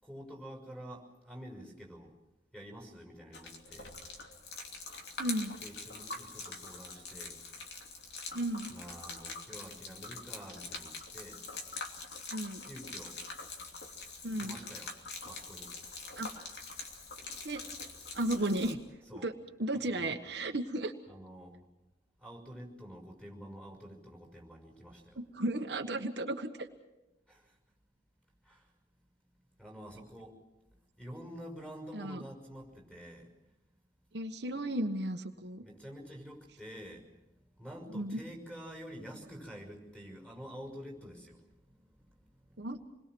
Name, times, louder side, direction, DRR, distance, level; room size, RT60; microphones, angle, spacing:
voice 1, 0.0-2.2 2.5-3.9 5.6-7.4 8.7-11.4 12.6-13.2 14.4-15.0 15.2-15.8 19.1-19.3 19.8-20.2 21.1-21.6 22.2-25.2 27.3-27.6 28.4-28.7 29.3-30.4 31.0-33.3 35.6-42.7, equal, 5° left, 1 dB, 5.9 m, -48 dB
Gurgling / Liquid, 3.3-18.7, left 4 dB, 65° left, 2.9 m, -44 dB
voice 2, 5.2-5.5 8.3-8.7 12.3-12.6 14.2-14.5 16.2-16.3 17.4-17.6 18.1-18.8 19.1-19.3 19.6-20.9 25.2-26.7 31.9-32.2 34.1-35.6 37.9-38.2 42.6-42.8, right 1 dB, 65° right, 4 dB, 1.4 m, -34 dB
28.0 x 21.5 x 6.2 m, 1.0 s
head